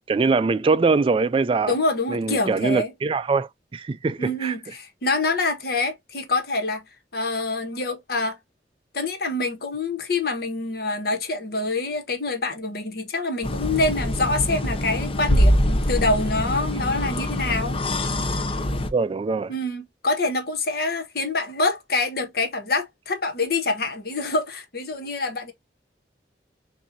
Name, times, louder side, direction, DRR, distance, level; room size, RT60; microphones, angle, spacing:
voice 1, 0.1-1.7 2.1-4.5 18.9-19.5, right 4 dB, 30° right, 0.3 m, -22 dB
voice 2, 1.7-2.9 4.2-6.8 7.1-8.4 8.9-17.8 19.5-25.5, left 2 dB, 60° left, 1.3 m, -26 dB
sound 1, 13.4-18.9, left 1 dB, 30° left, 0.7 m, -24 dB
6.7 x 2.7 x 2.7 m
head